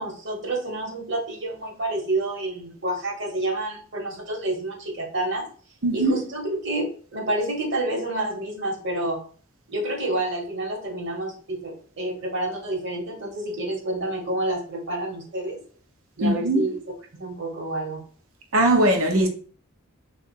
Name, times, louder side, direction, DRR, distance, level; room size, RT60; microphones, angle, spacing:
voice 1, 0.0-5.5 5.9-9.2 9.7-15.6 16.2-16.8 17.1-18.0, right 1 dB, 60° right, 1.4 m, -29 dB
voice 2, 5.8-6.2 16.2-16.7 18.5-19.3, right 1 dB, 85° right, 0.9 m, -20 dB
3.6 x 2.7 x 4.4 m
head